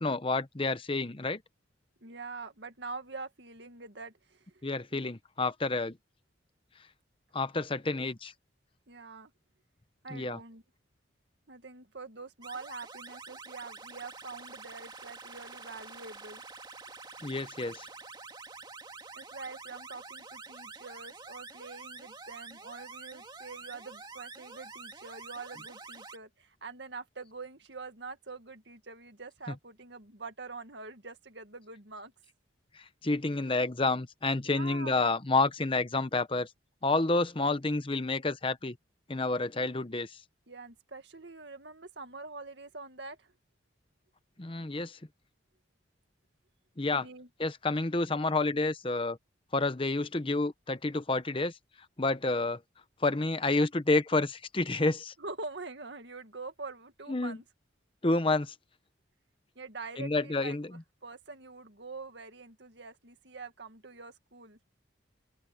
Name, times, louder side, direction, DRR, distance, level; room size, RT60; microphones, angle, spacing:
voice 1, 0.0-1.4 4.6-6.0 7.3-8.3 10.1-10.4 17.2-17.9 32.7-36.5 36.8-38.8 39.1-40.2 44.4-45.0 46.8-47.1 47.4-49.2 49.5-51.5 52.0-52.6 53.0-55.1 57.1-57.4 58.0-58.5 60.0-60.8, left 3 dB, 25° left, 0.8 m, -29 dB
voice 2, 2.0-4.6 4.9-5.1 8.9-9.3 10.0-10.6 11.5-16.4 19.1-32.1 34.5-35.2 40.5-43.3 46.9-47.3 55.2-57.4 59.6-60.6 61.0-64.6, right 3 dB, 60° right, 2.2 m, -45 dB
sound 1, 12.4-26.2, right 4 dB, 20° right, 2.3 m, -47 dB
open air
head